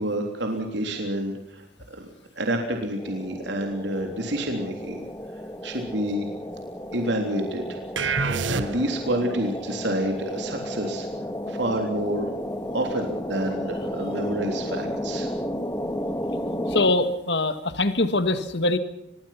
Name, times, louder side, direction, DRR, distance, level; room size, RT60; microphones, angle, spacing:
voice 1, 0.0-2.1 2.4-5.0 5.6-6.3 6.9-7.8 8.1-11.1 11.5-12.3 12.7-15.3, right 1 dB, 75° right, 3 dB, 3.5 m, -28 dB
sound 1, 3.0-16.9, equal, 15° left, 1.7 m, -33 dB
sound 2, 8.0-9.1, right 4 dB, 90° right, 1.4 m, -26 dB
voice 2, 16.7-18.8, left 2 dB, 65° left, 10 dB, 1.9 m, -23 dB
25.0 x 22.0 x 5.9 m, 0.82 s
head